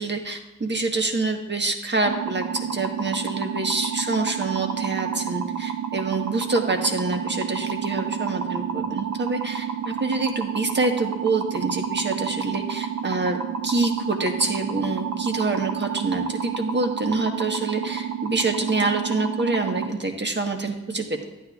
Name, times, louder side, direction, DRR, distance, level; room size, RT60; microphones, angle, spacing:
voice 1, 0.0-13.4 13.6-21.2, right 3 dB, 35° right, 4 dB, 1.4 m, -26 dB
sound 1, 2.0-19.9, right 8 dB, 60° right, 0.7 m, -30 dB
11.5 x 9.1 x 2.5 m, 1.1 s
cardioid pair, 40°, 31 cm